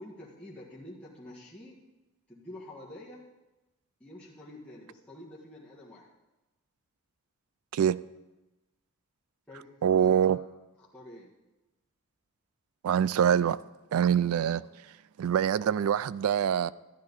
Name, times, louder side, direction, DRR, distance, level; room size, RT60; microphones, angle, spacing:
voice 1, 0.0-1.8 2.3-3.3 4.0-6.1 9.5-9.7 9.9-10.4 10.8-11.3, left 1 dB, 5° left, 1.7 m, -47 dB
voice 2, 9.8-10.4 12.8-13.6 13.9-14.6 15.2-16.7, right 8 dB, 75° right, 0.3 m, -24 dB
12.5 x 10.5 x 4.1 m
head